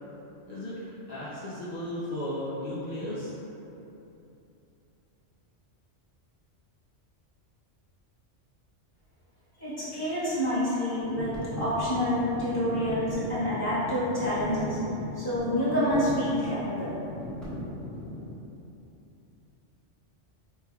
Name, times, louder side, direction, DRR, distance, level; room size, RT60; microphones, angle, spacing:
voice 1, 0.5-3.3, left 1 dB, 50° left, -9 dB, 0.5 m, -35 dB
voice 2, 9.6-14.8 15.1-16.9, equal, 20° left, -13 dB, 1.4 m, -28 dB
sound 1, 11.0-18.3, equal, ahead, 0.9 m, -38 dB
4.7 x 3.2 x 2.3 m, 2.9 s
omnidirectional pair, 1.2 m